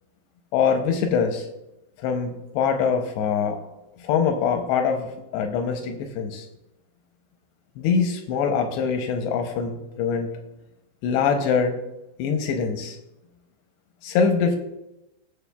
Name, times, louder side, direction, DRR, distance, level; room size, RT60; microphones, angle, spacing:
voice 1, 0.5-1.5 2.0-3.6 4.0-6.5 7.8-10.3 11.0-11.8 12.2-13.0 14.0-14.6, left 6 dB, 80° left, 5 dB, 2.5 m, -23 dB
16.5 x 6.9 x 2.3 m, 0.92 s
omnidirectional pair, 5.5 m